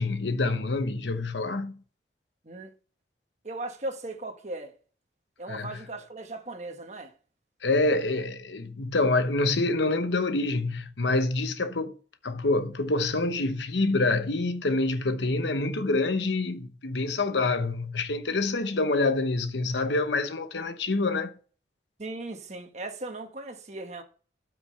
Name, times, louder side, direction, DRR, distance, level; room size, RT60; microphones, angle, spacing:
voice 1, 0.0-1.8 5.5-5.8 7.6-12.0 12.2-21.3, left 2 dB, 85° left, 1.0 m, -26 dB
voice 2, 3.4-4.7 5.4-7.1 22.0-24.0, right 2 dB, 40° right, 1.4 m, -37 dB
12.5 x 6.0 x 3.3 m
head